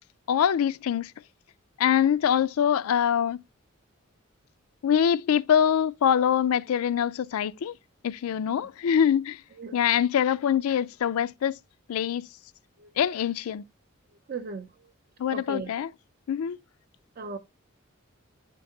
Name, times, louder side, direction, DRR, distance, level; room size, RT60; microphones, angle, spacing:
voice 1, 0.3-1.1 1.8-3.4 4.8-7.7 8.0-9.4 9.7-11.6 11.9-12.3 13.0-13.6 15.2-15.9 16.3-16.6, left 8 dB, 90° left, 0.4 m, -24 dB
voice 2, 14.3-14.9 15.3-15.7 17.2-17.4, right 4 dB, 45° right, 0.4 m, -37 dB
10.5 x 4.6 x 2.6 m
head